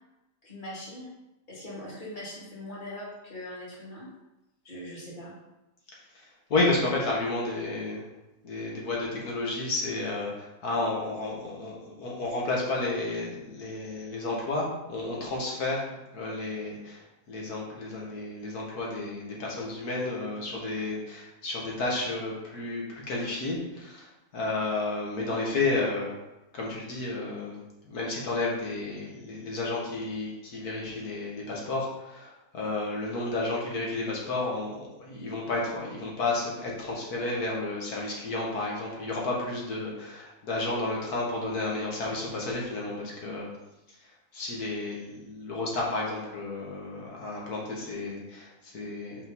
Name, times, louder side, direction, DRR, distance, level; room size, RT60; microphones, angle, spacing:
voice 1, 0.4-1.1 1.5-4.1 4.6-5.3, left 1 dB, 35° left, -6 dB, 2.3 m, -41 dB
voice 2, 6.2-8.0 8.4-15.9 16.1-26.2 26.5-43.5 44.3-49.2, left 2 dB, 90° left, -3 dB, 2.1 m, -32 dB
5.5 x 4.0 x 5.4 m, 0.97 s
omnidirectional pair, 1.6 m